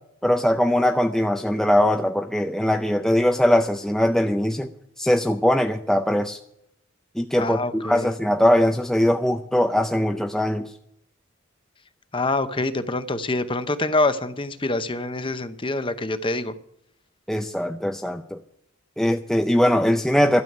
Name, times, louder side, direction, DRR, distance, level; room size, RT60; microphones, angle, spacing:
voice 1, 0.2-4.7 5.0-6.4 7.2-10.7 17.3-18.4 19.0-20.4, left 1 dB, ahead, 5 dB, 0.5 m, -21 dB
voice 2, 7.3-8.1 12.1-16.5, left 2 dB, 25° left, 11 dB, 0.8 m, -25 dB
12.5 x 7.0 x 9.3 m, 0.75 s
head